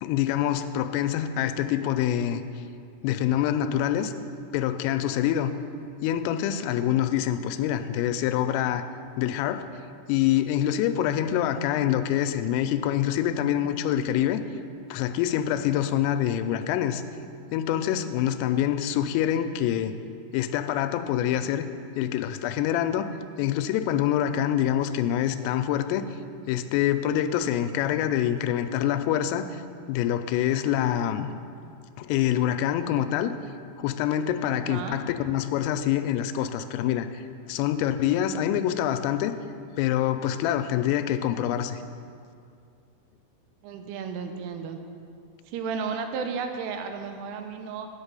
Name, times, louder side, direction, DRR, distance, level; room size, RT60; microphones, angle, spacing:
voice 1, 0.0-2.4 3.0-4.1 4.5-5.5 6.0-8.9 9.2-9.6 10.1-14.4 14.9-17.0 17.5-19.9 20.3-21.7 22.0-23.1 23.4-26.1 26.5-29.5 29.9-31.3 32.0-33.3 33.8-37.2 37.5-39.3 39.8-41.8, left 11 dB, 85° left, 10 dB, 3.2 m, -25 dB
voice 2, 34.7-35.0 43.6-44.8 45.5-47.9, right 5 dB, 85° right, 6 dB, 3.1 m, -33 dB
10.5 x 5.9 x 8.2 m, 2.4 s
omnidirectional pair, 5.8 m